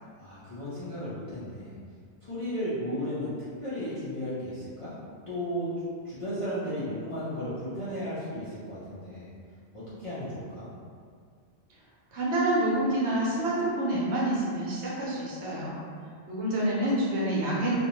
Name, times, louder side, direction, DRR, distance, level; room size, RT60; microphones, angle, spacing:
voice 1, 0.2-1.7 2.2-3.3 3.6-4.9 5.3-5.7 6.0-9.3 9.7-10.7, equal, 50° left, -12 dB, 0.4 m, -34 dB
voice 2, 12.1-15.8 16.3-17.8, right 1 dB, 70° right, -6 dB, 1.0 m, -27 dB
2.4 x 2.1 x 2.9 m, 2.1 s
omnidirectional pair, 1.2 m